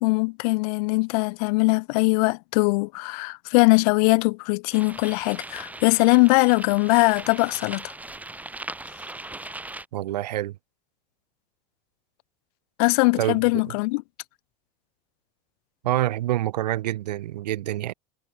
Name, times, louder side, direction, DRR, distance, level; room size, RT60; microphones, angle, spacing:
voice 1, 0.0-7.8 12.8-14.0, left 28 dB, 65° left, 1.1 m, -21 dB
sound 1, 4.7-9.8, right 2 dB, 5° right, 1.6 m, -39 dB
voice 2, 9.9-10.6 13.2-13.4 15.8-17.9, right 14 dB, 85° right, 0.6 m, -26 dB
hypercardioid pair, 100°, 21 cm